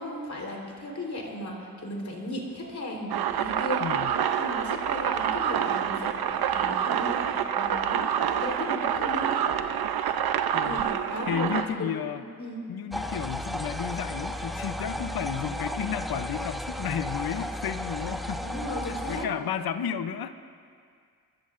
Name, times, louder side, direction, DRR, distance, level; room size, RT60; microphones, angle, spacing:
voice 1, 0.0-3.8 4.4-8.1 8.4-9.4 10.6-11.9 12.1-12.6 18.4-19.3, left 1 dB, 50° left, -1 dB, 4.0 m, -36 dB
sound 1, 3.1-11.7, right 9 dB, 85° right, 0.7 m, -27 dB
voice 2, 3.8-4.1 10.5-10.9 11.3-12.2 12.7-18.4 18.9-20.4, left 8 dB, 85° left, 11 dB, 0.8 m, -32 dB
sound 2, 12.9-19.2, left 1 dB, ahead, 0.7 m, -34 dB
27.0 x 14.0 x 2.6 m, 2.2 s
cardioid pair, 65°, 36 cm